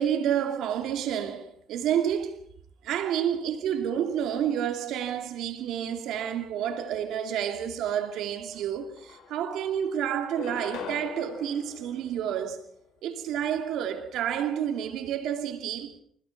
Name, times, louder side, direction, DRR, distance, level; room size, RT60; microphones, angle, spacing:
voice 1, 0.0-2.4 2.8-9.0 9.3-12.6 13.0-16.0, right 9 dB, 85° right, 2.6 m, -29 dB
sound 1, 8.5-8.6 9.0-9.7 10.2-12.8, left 6 dB, 90° left, 5.7 m, -42 dB
27.0 x 16.5 x 5.9 m
cardioid pair, 90°, 0 cm